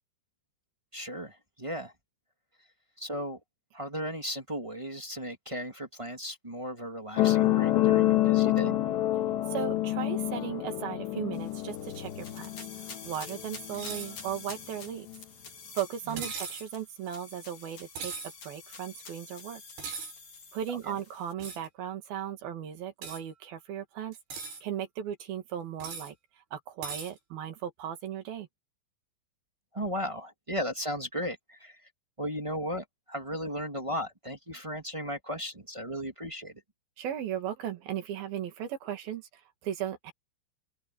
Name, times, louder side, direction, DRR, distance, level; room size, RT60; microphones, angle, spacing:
voice 1, 0.9-1.9 3.0-3.4 3.7-8.8 16.1-16.3 20.9-21.0 29.7-31.9 32.2-36.6, equal, 20° right, 0.7 m, -36 dB
sound 1, 7.2-14.2 15.1-15.2, left 14 dB, 75° left, 3.8 m, -27 dB
voice 2, 9.5-12.5 12.8-15.1 15.8-18.1 18.4-19.6 20.5-24.2 24.6-26.1 26.5-28.5 37.0-39.3 39.6-40.1, right 10 dB, 60° right, 4.0 m, -36 dB
sound 2, 11.3-21.3, left 5 dB, 45° left, 5.8 m, -48 dB
sound 3, 13.7-14.1 16.2-16.7 18.0-18.3 19.8-20.1 21.4-21.7 23.0-23.2 24.1-24.6 25.8-26.1 26.8-27.1, right 5 dB, 80° right, 8.1 m, -38 dB
open air
omnidirectional pair, 5.0 m